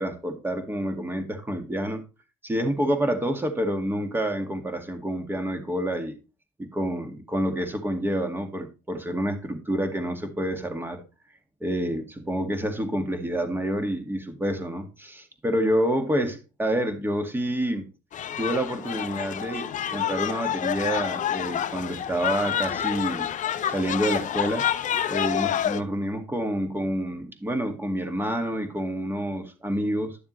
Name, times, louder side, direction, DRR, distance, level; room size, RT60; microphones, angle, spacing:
voice 1, 0.0-2.0 2.4-6.2 6.6-11.0 11.6-17.9 18.4-23.3 23.7-30.2, right 1 dB, 10° right, 2.1 m, -28 dB
sound 1, 18.1-25.8, left 10 dB, 50° left, 0.7 m, -28 dB
12.0 x 7.0 x 3.2 m
cardioid pair, 110°, 17 cm